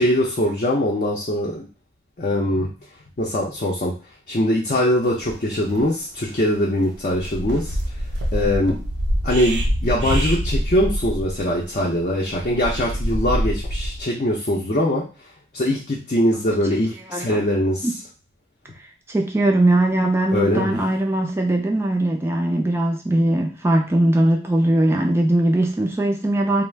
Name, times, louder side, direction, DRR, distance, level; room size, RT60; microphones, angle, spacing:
voice 1, 0.0-1.7 2.2-2.7 3.2-3.9 4.3-7.7 8.3-8.8 9.2-15.0 15.5-17.9 20.3-20.8, left 1 dB, 45° left, -4 dB, 0.5 m, -22 dB
sound 1, 5.3-5.4 5.6-5.9 6.3-6.6 7.0-14.0, equal, 75° right, 0.6 m, -25 dB
voice 2, 17.1-17.4 17.8-18.0 19.1-26.6, right 1 dB, 15° right, 2 dB, 0.3 m, -20 dB
2.4 x 2.0 x 3.2 m, 0.33 s
head